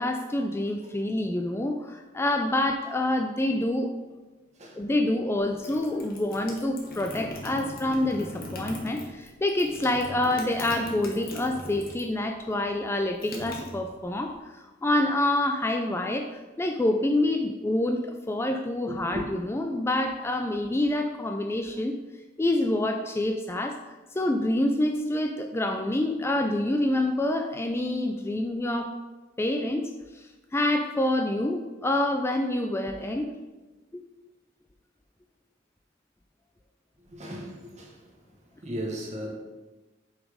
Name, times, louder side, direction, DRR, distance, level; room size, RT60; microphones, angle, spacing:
voice 1, 0.0-3.9 4.8-22.0 22.4-23.8 24.1-28.9 29.4-29.8 30.1-33.3 33.9-34.0, left 1 dB, 15° left, 4 dB, 0.3 m, -27 dB
sound 1, 5.4-12.2 12.4-14.3, left 2 dB, 50° left, 1.2 m, -40 dB
voice 2, 18.9-19.3 37.1-38.0 38.6-39.3, equal, 40° right, -1 dB, 1.3 m, -35 dB
5.9 x 4.1 x 5.0 m, 1.2 s
head